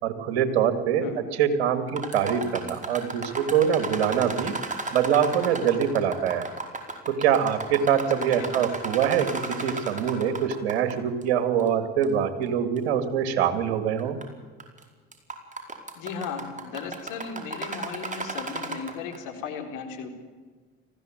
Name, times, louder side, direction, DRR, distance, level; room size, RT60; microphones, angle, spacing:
voice 1, 0.0-4.6 4.9-6.5 7.1-14.2, right 8 dB, 80° right, 10 dB, 2.2 m, -24 dB
sound 1, 1.9-10.9 11.2-11.3 12.0-12.1 12.8-12.9 14.0-14.2 14.6-14.8 15.1-19.2, right 3 dB, 25° right, 4.9 m, -34 dB
voice 2, 8.1-8.6 16.0-20.1, left 6 dB, 70° left, 4 dB, 4.0 m, -36 dB
20.0 x 16.0 x 9.1 m, 1.5 s
hypercardioid pair, 65°, 31 cm